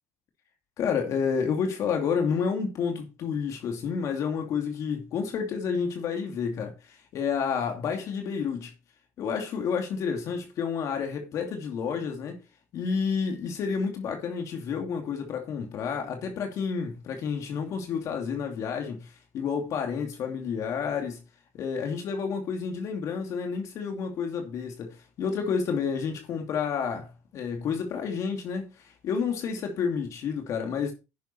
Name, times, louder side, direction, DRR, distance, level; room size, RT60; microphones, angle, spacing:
voice 1, 0.8-8.7 9.2-12.4 12.7-19.1 19.3-21.2 21.5-30.9, left 6 dB, 55° left, 2.5 m, -30 dB
11.0 x 6.4 x 4.3 m
supercardioid pair, 105°, 7 cm